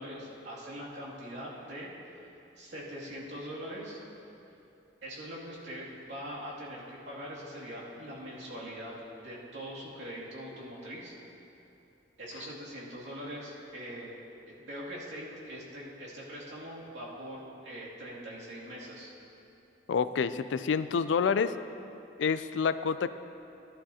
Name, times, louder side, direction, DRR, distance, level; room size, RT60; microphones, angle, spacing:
voice 1, 0.0-1.9 2.2-2.3 2.6-4.0 5.0-9.0 9.2-11.1 12.2-14.2 14.5-19.1, equal, 80° right, -6 dB, 2.5 m, -42 dB
voice 2, 19.9-21.5 22.2-23.1, left 6 dB, 85° left, 13 dB, 0.4 m, -28 dB
15.0 x 11.0 x 2.8 m, 2.8 s
head